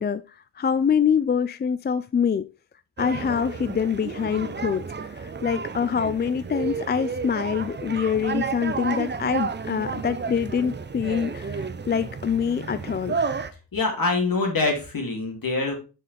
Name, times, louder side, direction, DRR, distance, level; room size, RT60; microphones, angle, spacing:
voice 1, 0.0-2.5 3.0-4.8 5.1-13.2, left 7 dB, 25° left, 0.4 m, -25 dB
sound 1, 3.0-13.5, right 5 dB, 25° right, 0.7 m, -32 dB
voice 2, 13.7-15.8, left 3 dB, 55° left, 2.7 m, -24 dB
6.7 x 5.5 x 3.3 m
supercardioid pair, 45°, 39 cm